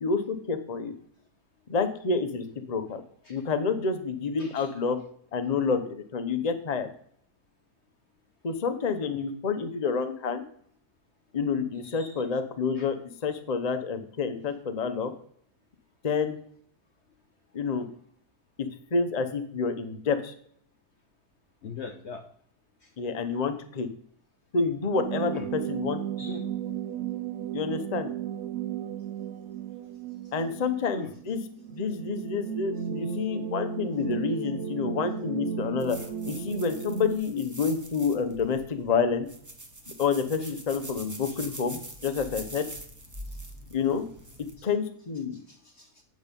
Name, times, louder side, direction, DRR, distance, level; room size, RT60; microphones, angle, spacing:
voice 1, 0.0-0.9 1.7-3.0 3.3-5.0 5.3-6.9 8.4-10.4 11.3-13.0 13.2-15.1 16.0-16.4 17.5-17.9 18.6-20.3 23.0-23.9 24.5-26.0 26.3-26.4 27.5-28.1 30.3-31.4 31.7-36.0 36.3-39.3 40.0-42.6 43.7-44.0 44.6-45.4, left 5 dB, 30° left, 8 dB, 0.8 m, -28 dB
voice 2, 4.4-4.7 11.8-12.2 12.8-12.9 21.6-22.2 22.8-22.9 25.3-25.5 26.2-26.4 31.0-31.1 43.3-43.4 45.3-46.0, left 6 dB, 55° left, 5 dB, 1.0 m, -42 dB
sound 1, 25.0-37.2, right 8 dB, 65° right, 0.9 m, -35 dB
sound 2, 35.8-44.5, right 1 dB, 15° right, 0.8 m, -44 dB
8.8 x 6.4 x 5.3 m, 0.64 s
omnidirectional pair, 1.7 m